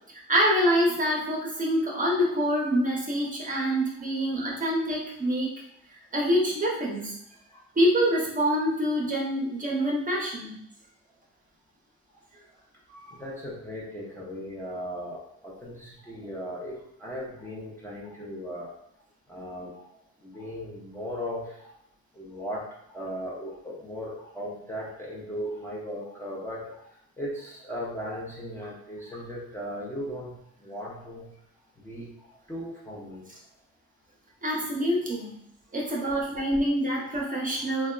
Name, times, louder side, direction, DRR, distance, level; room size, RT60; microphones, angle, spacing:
voice 1, 0.1-5.5 6.1-7.1 7.8-10.6 12.9-13.0 34.4-35.4 35.7-37.9, equal, 25° right, -3 dB, 0.8 m, -26 dB
voice 2, 13.1-18.7 19.3-19.9 20.2-21.7 22.1-26.9 27.2-30.3 30.6-31.3 31.8-33.2 36.0-36.1, equal, 10° left, -6 dB, 0.7 m, -37 dB
3.4 x 2.2 x 2.3 m, 0.71 s
cardioid pair, 90°, 30 cm